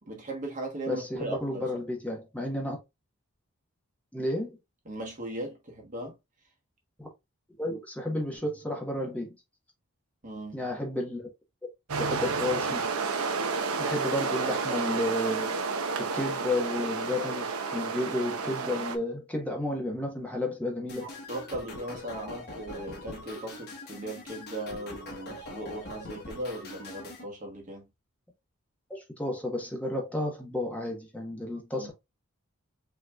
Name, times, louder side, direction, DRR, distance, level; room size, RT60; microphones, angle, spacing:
voice 1, 0.0-1.7 4.8-6.2 10.2-10.7 21.0-27.9 31.8-31.9, right 1 dB, 35° right, 1.2 m, -38 dB
voice 2, 0.9-2.8 4.1-4.6 7.0-7.1 7.6-9.3 10.5-11.3 12.0-12.8 13.8-21.1 28.9-31.9, left 1 dB, 5° left, 1.2 m, -32 dB
sound 1, 11.9-19.0, right 4 dB, 85° right, 0.7 m, -30 dB
sound 2, 20.9-27.2, left 1 dB, 50° left, 1.2 m, -43 dB
5.7 x 3.0 x 2.3 m
head